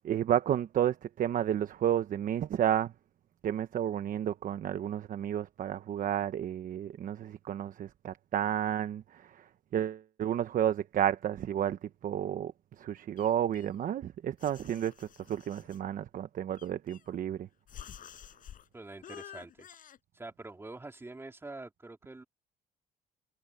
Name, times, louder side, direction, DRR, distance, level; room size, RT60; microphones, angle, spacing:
voice 1, 0.0-2.9 3.4-9.0 9.7-12.5 12.8-17.5, right 10 dB, 55° right, 1.1 m, -31 dB
sound 1, 13.2-14.0 14.4-15.8 16.6-17.3 17.7-18.7 19.0-20.0, left 9 dB, 55° left, 5.5 m, -50 dB
voice 2, 18.7-19.7 20.1-22.2, right 2 dB, 15° right, 3.8 m, -45 dB
cardioid pair, 110°, 17 cm